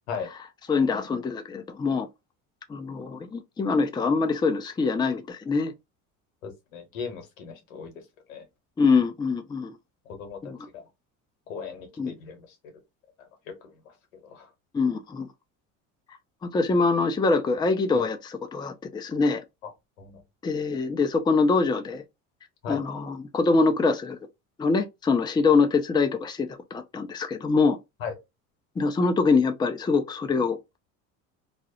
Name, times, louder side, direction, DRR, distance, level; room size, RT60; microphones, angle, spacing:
voice 1, 0.7-2.1 2.7-5.7 8.8-9.7 10.4-10.6 12.0-12.1 14.7-15.3 16.5-19.4 20.4-22.0 22.7-24.2 24.6-27.8 28.8-30.8, left 4 dB, 10° left, 0.4 m, -24 dB
voice 2, 6.4-7.9 8.3-8.4 10.1-10.8 11.5-12.7 13.2-14.5 19.6-19.7 20.0-20.2 20.6-20.7 22.6-22.8 28.0-28.2, left 6 dB, 90° left, 0.9 m, -38 dB
2.3 x 2.0 x 2.8 m
hypercardioid pair, 75°, 39 cm